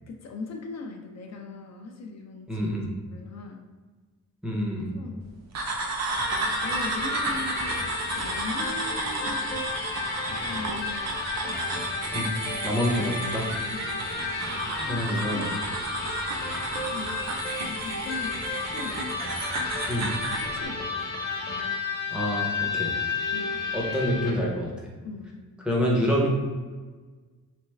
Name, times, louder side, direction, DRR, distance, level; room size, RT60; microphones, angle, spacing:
voice 1, 0.0-2.7 3.1-3.6 4.9-5.3 6.6-9.6 10.3-11.1 11.4-11.6 13.7-14.0 14.9-15.5 16.9-17.3 17.7-19.0 20.4-21.0 23.3-23.7 25.0-25.4, left 3 dB, 55° left, 2 dB, 0.5 m, -39 dB
voice 2, 2.5-2.9 4.4-5.0 12.1-12.4 12.6-13.5 14.7-15.5 19.9-20.1 22.1-22.9 23.7-24.9 25.7-26.3, equal, 5° right, -4 dB, 0.5 m, -27 dB
sound 1, 5.5-20.5, right 2 dB, 55° right, 0.6 m, -33 dB
Electric guitar, 6.1-24.5, left 3 dB, 30° left, 0.8 m, -32 dB
3.4 x 3.2 x 3.2 m, 1.4 s
wide cardioid pair, 180°, 32 cm